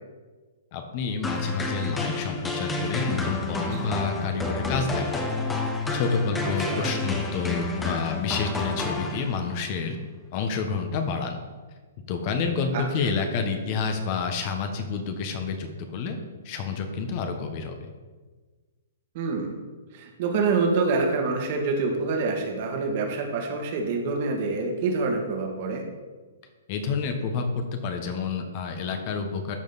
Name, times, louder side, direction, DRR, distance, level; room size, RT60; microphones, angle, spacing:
voice 1, 0.7-5.3 5.9-10.0 10.3-11.4 12.1-16.2 16.4-17.9 26.7-29.5, left 5 dB, 45° left, 5 dB, 1.3 m, -29 dB
sound 1, 1.2-9.6, left 2 dB, 10° left, 1.1 m, -30 dB
voice 2, 6.4-6.9 12.7-13.1 19.1-19.5 19.9-25.8, right 4 dB, 50° right, 1 dB, 2.1 m, -26 dB
13.5 x 5.1 x 4.2 m, 1.4 s
hypercardioid pair, 125°, 0 cm